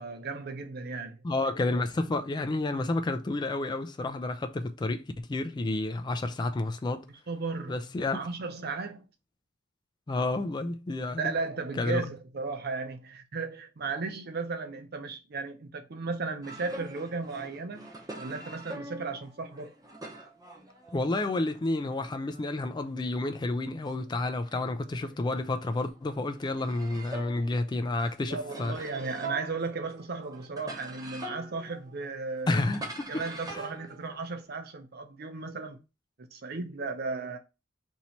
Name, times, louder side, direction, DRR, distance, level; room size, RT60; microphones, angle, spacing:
voice 1, 0.0-1.2 7.3-7.8 8.1-9.0 11.2-19.7 28.3-32.5 33.1-35.8 36.3-37.4, right 4 dB, 55° right, 0.6 m, -35 dB
voice 2, 1.2-7.1 7.7-8.3 10.1-11.3 11.8-12.0 20.9-28.7 32.5-33.2 33.5-33.7, left 2 dB, 25° left, 0.3 m, -30 dB
sound 1, 16.4-21.7 22.0-25.4 25.7-34.6, right 2 dB, 20° right, 0.7 m, -45 dB
3.0 x 2.7 x 4.3 m
head